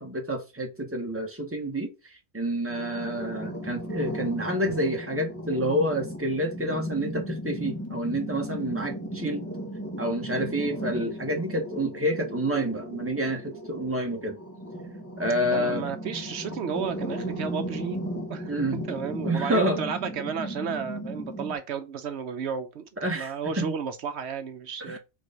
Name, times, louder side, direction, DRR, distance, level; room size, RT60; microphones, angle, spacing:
voice 1, 0.0-1.9 2.3-9.4 10.0-14.4 15.2-15.9 18.5-19.8 23.0-23.7 24.9-25.0, right 1 dB, 10° right, 1.3 m, -28 dB
sound 1, 2.7-21.6, equal, 15° left, 1.2 m, -36 dB
voice 2, 15.4-18.0 18.3-18.5 18.9-22.9 23.1-25.0, right 6 dB, 75° right, 1.0 m, -33 dB
4.7 x 3.8 x 5.2 m
omnidirectional pair, 1.1 m